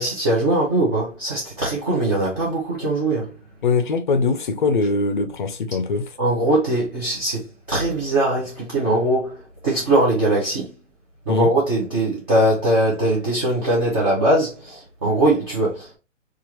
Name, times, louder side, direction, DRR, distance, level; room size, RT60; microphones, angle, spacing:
voice 1, 0.0-3.3 6.2-10.7 11.3-16.0, right 1 dB, 20° right, 0.7 m, -21 dB
voice 2, 3.6-6.0 11.3-11.5, left 4 dB, 40° left, 0.6 m, -21 dB
4.4 x 2.5 x 2.9 m
hypercardioid pair, 160°, 37 cm